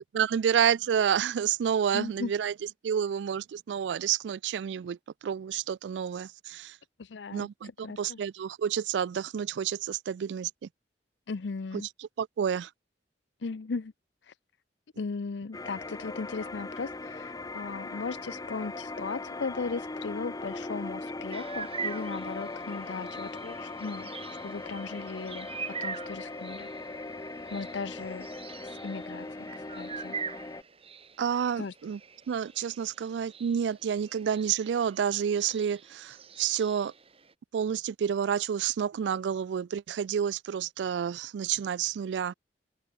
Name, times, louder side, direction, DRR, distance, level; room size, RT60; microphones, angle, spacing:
voice 1, 0.1-2.5 2.8-5.0 5.2-6.7 7.3-7.7 8.0-10.5 12.0-12.7 31.2-32.0 32.3-36.9 37.5-42.3, right 8 dB, 80° right, 0.3 m, -29 dB
voice 2, 1.9-2.3 7.0-8.2 11.3-11.9 13.4-13.9 14.2-14.4 15.0-26.7 27.5-28.3 28.6-30.2 31.6-31.8, left 4 dB, 90° left, 0.6 m, -37 dB
sound 1, 15.5-30.6, left 2 dB, 20° left, 0.6 m, -39 dB
sound 2, 21.3-37.3, right 6 dB, 35° right, 2.2 m, -44 dB
open air
head